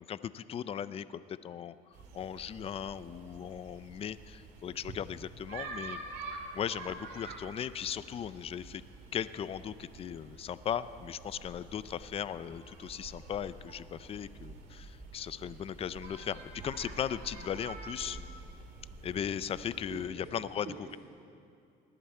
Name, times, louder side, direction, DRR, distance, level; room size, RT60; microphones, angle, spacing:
voice 1, 0.0-1.7 2.1-6.0 6.5-8.8 9.1-18.2 19.0-20.7, left 9 dB, 35° left, 15 dB, 0.4 m, -37 dB
sound 1, 1.9-20.1, right 3 dB, 85° right, 2.0 m, -47 dB
voice 2, 19.9-21.0, right 5 dB, 65° right, -3 dB, 1.9 m, -47 dB
19.0 x 12.0 x 4.4 m, 2.5 s
cardioid pair, 110°, 17 cm